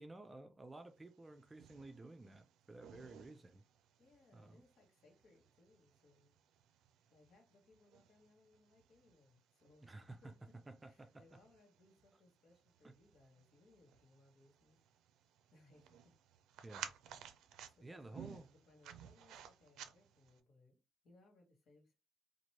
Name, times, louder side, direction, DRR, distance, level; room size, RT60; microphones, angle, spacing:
voice 1, 0.0-3.6 4.3-4.6 9.8-10.3 10.7-11.2 12.8-12.9 16.6-16.9 17.8-18.5, right 2 dB, 20° right, 0.4 m, -54 dB
sound 1, 1.0-20.4, right 9 dB, 85° right, 0.4 m, -57 dB
voice 2, 4.0-6.3 7.1-10.5 10.8-14.8 15.5-16.1 17.8-22.0, left 2 dB, 60° left, 1.2 m, -68 dB
3.0 x 2.5 x 2.9 m
cardioid pair, 90°, 0 cm